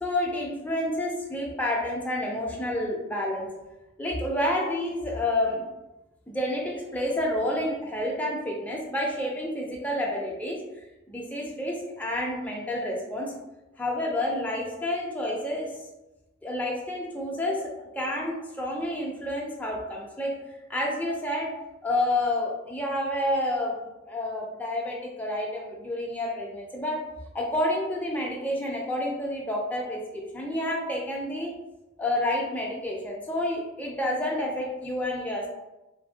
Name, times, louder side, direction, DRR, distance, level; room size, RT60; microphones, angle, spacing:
voice 1, 0.0-3.5 4.0-5.6 6.3-10.6 11.1-13.3 13.8-15.7 16.4-20.4 20.7-21.5 21.8-23.8 24.1-27.0 27.3-31.5 32.0-35.5, left 1 dB, 10° left, -2 dB, 0.4 m, -29 dB
2.7 x 2.5 x 2.7 m, 1.0 s
head